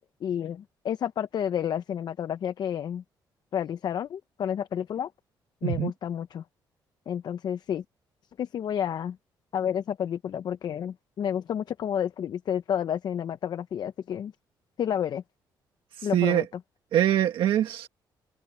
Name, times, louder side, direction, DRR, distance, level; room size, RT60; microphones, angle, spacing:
voice 1, 0.0-3.0 3.5-5.1 5.6-6.4 7.1-7.8 8.4-9.2 9.5-14.3 14.8-15.2 16.0-16.5, left 9 dB, 55° left, 0.7 m, -30 dB
voice 2, 16.0-16.4 16.9-17.9, right 11 dB, 85° right, 1.5 m, -24 dB
cardioid pair, 130°, 8 cm